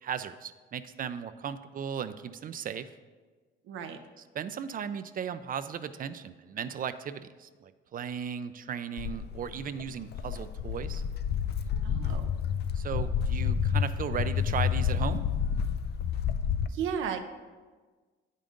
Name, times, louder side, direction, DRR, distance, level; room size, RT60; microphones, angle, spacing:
voice 1, 0.0-2.9 4.3-11.0 12.7-15.3, right 8 dB, 45° right, 12 dB, 0.4 m, -36 dB
voice 2, 3.6-4.0 11.8-12.3 16.7-17.2, right 7 dB, 85° right, 7 dB, 0.7 m, -34 dB
Walk footsteps, 9.0-16.7, left 7 dB, 55° left, 0.4 m, -29 dB
9.0 x 5.2 x 3.8 m, 1.4 s
cardioid pair, 90°, 20 cm